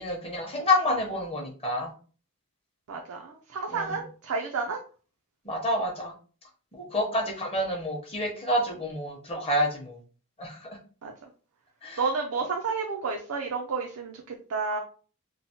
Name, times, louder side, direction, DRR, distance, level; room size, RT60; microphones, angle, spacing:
voice 1, 0.0-1.9 3.7-3.9 5.4-6.1 6.9-10.0 10.4-10.7 11.8-12.0, left 1 dB, 25° left, 1 dB, 0.8 m, -28 dB
voice 2, 2.9-4.8 11.0-11.1 12.0-14.8, right 4 dB, 70° right, 2 dB, 0.4 m, -31 dB
3.0 x 2.0 x 2.8 m, 0.39 s
head